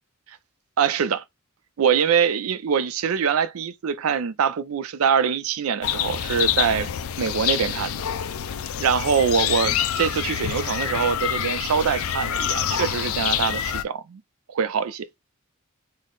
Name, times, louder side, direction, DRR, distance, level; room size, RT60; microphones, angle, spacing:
voice 1, 0.8-1.2 1.8-6.9 7.2-8.0 8.8-14.2 14.5-15.1, right 7 dB, 85° right, 0.4 m, -24 dB
sound 1, 5.8-13.8, left 10 dB, 80° left, 0.4 m, -26 dB
3.7 x 2.0 x 3.8 m
head